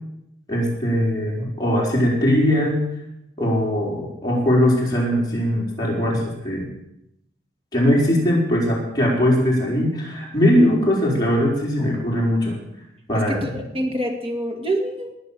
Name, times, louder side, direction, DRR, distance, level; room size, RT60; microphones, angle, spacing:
voice 1, 0.5-2.8 3.4-6.7 7.7-12.6 13.1-13.6, equal, 20° left, -3 dB, 4.7 m, -20 dB
voice 2, 13.1-15.1, right 1 dB, 30° right, 2 dB, 2.2 m, -26 dB
20.0 x 6.7 x 7.6 m, 0.84 s
head